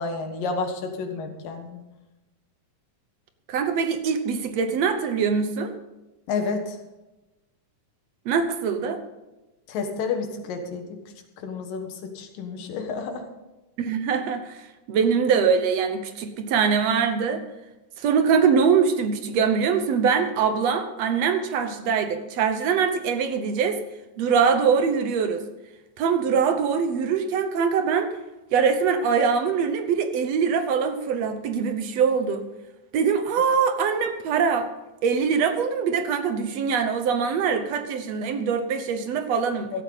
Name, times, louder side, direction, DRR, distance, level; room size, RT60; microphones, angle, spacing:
voice 1, 0.0-1.8 6.3-6.8 9.7-10.9 11.4-13.3 39.7-39.8, left 4 dB, 80° left, 5 dB, 3.3 m, -30 dB
voice 2, 3.5-5.7 8.3-9.0 13.8-17.4 18.0-23.8 24.2-25.4 26.0-28.1 28.5-32.4 32.9-34.7 35.0-39.7, right 6 dB, 65° right, 8 dB, 1.8 m, -23 dB
16.5 x 12.5 x 4.0 m, 1.0 s
omnidirectional pair, 3.9 m